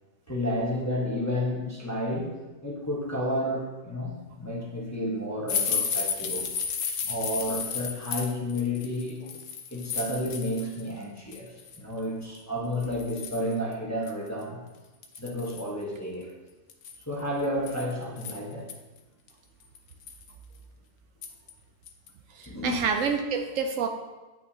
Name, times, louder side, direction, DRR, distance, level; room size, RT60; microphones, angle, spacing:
voice 1, 0.3-2.3 2.6-6.5 7.1-9.2 9.7-14.6 15.2-16.3 17.1-18.7 22.5-22.8, left 1 dB, 15° left, -4 dB, 1.0 m, -31 dB
sound 1, 5.5-10.8 11.2-11.8 12.3-12.4 12.8-13.5 14.1-14.2 14.4-14.5 15.0-15.7 16.7-18.7 19.3-19.4 19.8-20.3 21.2-21.5 21.9-22.1 22.4-22.5, left 6 dB, 65° left, 1.0 m, -33 dB
voice 2, 22.4-23.9, right 6 dB, 70° right, 5 dB, 0.9 m, -28 dB
8.8 x 5.7 x 2.8 m, 1.2 s
omnidirectional pair, 1.5 m